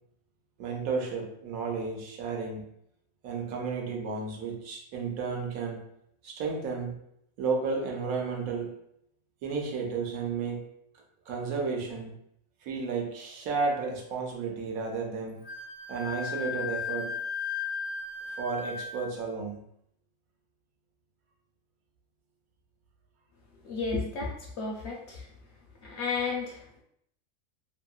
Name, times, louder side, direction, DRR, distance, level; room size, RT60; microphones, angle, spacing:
voice 1, 0.6-2.6 3.2-5.8 6.2-7.0 7.4-8.7 9.4-10.6 11.3-12.1 12.6-15.4 15.9-17.1 18.3-19.6, right 4 dB, 80° right, 0 dB, 1.1 m, -32 dB
Wind instrument woodwind instrument, 15.4-19.1, left 5 dB, 90° left, 1.1 m, -35 dB
voice 2, 23.6-25.3 25.8-26.8, left 4 dB, 65° left, -2 dB, 0.7 m, -33 dB
2.9 x 2.7 x 2.3 m, 0.73 s
omnidirectional pair, 1.5 m